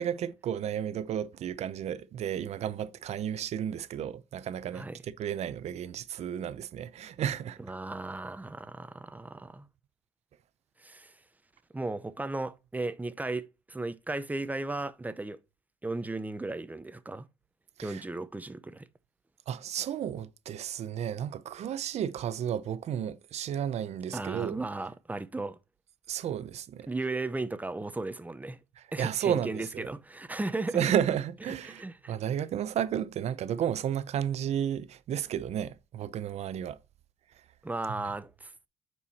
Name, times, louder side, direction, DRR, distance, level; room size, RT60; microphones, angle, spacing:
voice 1, 0.0-7.6 17.8-18.0 19.5-24.6 26.1-26.9 28.8-29.9 30.7-36.8, right 9 dB, 75° right, 0.7 m, -32 dB
voice 2, 7.6-9.7 10.8-11.1 11.7-15.4 15.8-17.3 17.8-18.9 24.1-25.6 26.9-28.6 28.9-31.0 31.6-32.1 37.6-38.5, right 2 dB, 15° right, 0.7 m, -35 dB
8.6 x 4.7 x 4.2 m
cardioid pair, 85°, 11 cm